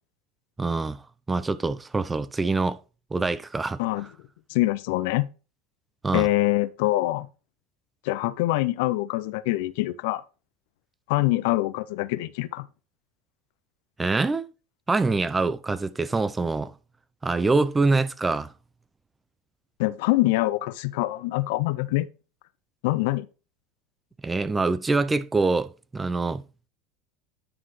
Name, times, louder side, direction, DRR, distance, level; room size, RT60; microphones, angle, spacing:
voice 1, 0.6-1.0 1.3-2.8 3.1-3.8 6.0-6.3 14.0-14.5 14.9-16.7 17.2-18.5 24.2-26.4, right 3 dB, 15° right, 0.5 m, -25 dB
voice 2, 3.8-4.1 4.5-5.3 6.1-7.3 8.0-10.2 11.1-12.7 19.8-22.1 22.8-23.3, left 18 dB, 65° left, 0.5 m, -24 dB
9.8 x 5.6 x 3.1 m
hypercardioid pair, 80°, 0 cm